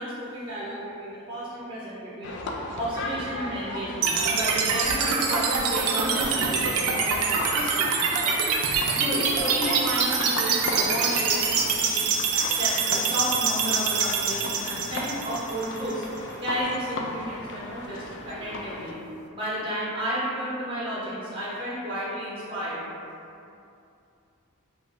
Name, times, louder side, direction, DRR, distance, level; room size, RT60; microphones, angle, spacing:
voice 1, 0.0-2.4 2.7-7.9 9.0-12.0 12.6-16.0 16.4-19.0 19.3-22.9, equal, 25° right, -8 dB, 0.7 m, -32 dB
sound 1, 2.2-18.9, left 2 dB, 55° left, 0.3 m, -36 dB
sound 2, 4.0-16.0, right 5 dB, 80° right, 0.4 m, -25 dB
4.5 x 2.4 x 2.5 m, 2.6 s
head